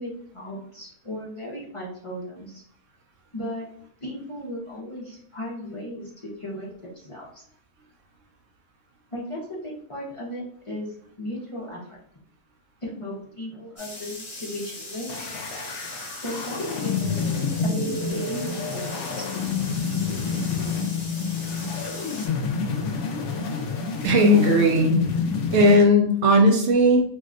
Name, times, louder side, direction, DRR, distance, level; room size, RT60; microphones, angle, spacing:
voice 1, 0.0-2.6 3.3-3.6 4.0-6.1 6.4-7.4 9.1-12.0 12.8-15.2 16.2-19.3, left 1 dB, 35° left, -5 dB, 0.5 m, -36 dB
sound 1, 13.8-22.3, left 1 dB, 20° left, 1.0 m, -40 dB
sound 2, 15.1-25.8, left 5 dB, 65° left, 0.9 m, -28 dB
voice 2, 24.0-25.0 25.5-27.0, equal, 65° right, 2 dB, 1.0 m, -17 dB
2.7 x 2.2 x 3.7 m, 0.65 s
omnidirectional pair, 1.5 m